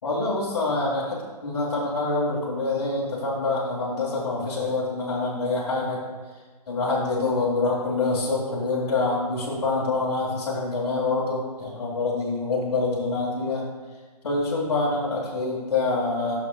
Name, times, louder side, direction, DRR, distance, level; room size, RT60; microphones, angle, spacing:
voice 1, 0.0-6.0 6.7-13.7 14.2-16.4, left 3 dB, 45° left, -7 dB, 2.0 m, -26 dB
13.0 x 6.7 x 2.4 m, 1.4 s
hypercardioid pair, 175°, 21 cm